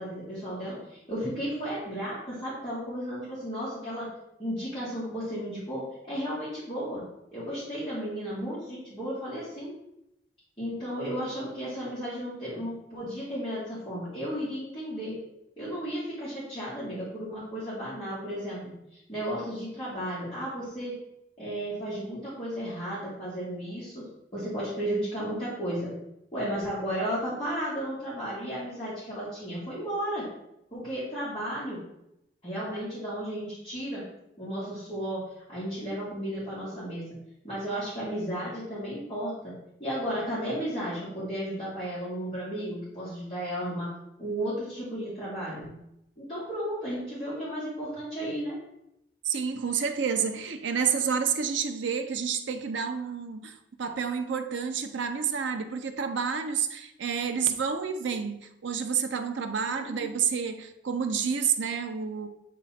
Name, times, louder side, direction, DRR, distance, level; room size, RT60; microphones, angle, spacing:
voice 1, 0.0-4.1 4.4-7.1 7.3-9.8 10.6-15.2 15.6-20.9 21.4-24.0 24.3-25.9 26.3-30.3 30.7-31.8 32.4-34.0 34.4-35.2 35.5-37.0 37.4-43.9 44.2-45.6 46.2-48.6 59.7-60.1, equal, 25° left, -12 dB, 2.0 m, -34 dB
voice 2, 49.2-62.3, right 6 dB, 75° right, 7 dB, 0.6 m, -29 dB
8.2 x 3.0 x 4.2 m, 0.83 s
head